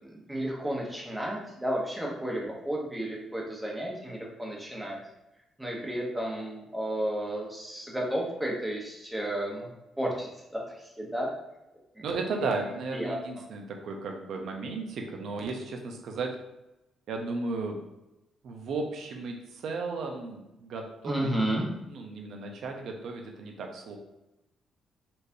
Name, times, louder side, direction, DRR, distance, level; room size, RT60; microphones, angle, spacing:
voice 1, 0.0-5.0 5.6-9.7 10.0-11.3 11.9-12.1 12.4-12.6 12.9-13.4 21.0-21.7, right 1 dB, 5° right, -3 dB, 1.1 m, -32 dB
voice 2, 12.0-16.3 17.1-17.8 18.4-21.3 21.9-24.0, right 3 dB, 70° right, 2 dB, 0.7 m, -34 dB
4.3 x 3.2 x 2.7 m, 0.92 s
cardioid pair, 105°, 0 cm